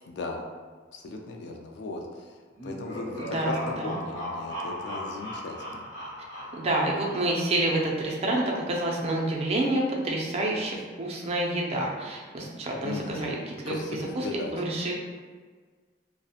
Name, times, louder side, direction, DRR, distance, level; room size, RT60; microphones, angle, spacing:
voice 1, 0.1-0.4 0.9-2.4 2.6-5.8 12.8-13.3 13.7-14.5, left 3 dB, 65° left, 1 dB, 0.3 m, -37 dB
sound 1, 2.5-7.6, equal, 85° left, 0.8 m, -37 dB
voice 2, 3.2-4.0 6.5-13.8 14.1-14.9, right 1 dB, 35° right, -1 dB, 0.4 m, -28 dB
2.4 x 2.0 x 2.7 m, 1.5 s
head